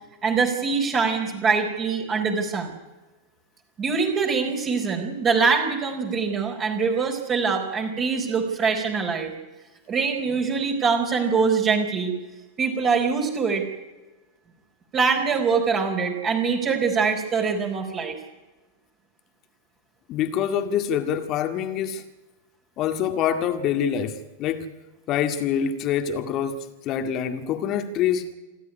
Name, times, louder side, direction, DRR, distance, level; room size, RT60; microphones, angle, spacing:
voice 1, 0.2-2.8 3.8-9.3 9.9-12.1 12.6-13.6 14.9-18.1, right 5 dB, 25° right, 4.3 m, -23 dB
voice 2, 20.1-22.0 22.8-24.7 25.1-26.6 26.9-28.3, left 8 dB, 35° left, 2.1 m, -25 dB
27.5 x 12.5 x 10.0 m
figure-of-eight pair, 90°, 0 cm